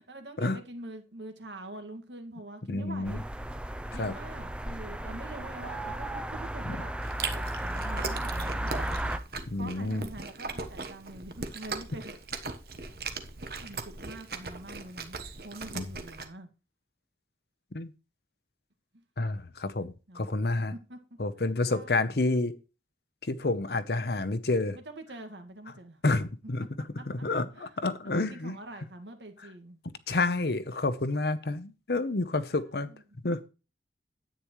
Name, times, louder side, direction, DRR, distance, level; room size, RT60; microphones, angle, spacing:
voice 1, 0.0-3.2 3.9-9.0 9.5-12.1 13.6-15.2 15.4-16.5 18.9-19.0 20.1-20.3 20.7-21.2 21.7-22.2 24.7-26.0 27.0-27.1 27.6-27.9 28.2-29.8 32.5-32.6 32.9-33.0, right 2 dB, 90° right, 1.9 m, -45 dB
voice 2, 2.7-3.2 3.9-4.1 9.5-10.1 15.7-15.8 17.7-17.9 19.2-20.7 21.2-22.5 23.2-24.8 26.0-26.7 27.1-28.6 30.1-32.9 33.2-33.5, left 2 dB, 65° left, 0.8 m, -29 dB
sound 1, 3.0-9.2, right 1 dB, 5° right, 0.4 m, -34 dB
Chewing mastication, 7.0-16.3, right 4 dB, 55° right, 1.1 m, -39 dB
10.0 x 8.8 x 3.1 m
head